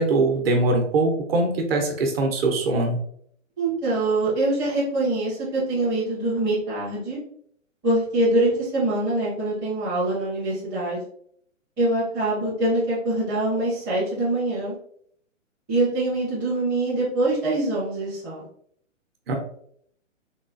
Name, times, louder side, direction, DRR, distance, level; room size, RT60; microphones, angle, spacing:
voice 1, 0.0-3.0 19.3-19.4, right 2 dB, 50° right, 2 dB, 0.9 m, -22 dB
voice 2, 3.6-7.2 7.8-11.0 11.8-14.7 15.7-18.4, right 2 dB, 10° right, -9 dB, 0.5 m, -24 dB
3.6 x 2.3 x 2.5 m, 0.64 s
hypercardioid pair, 150°, 39 cm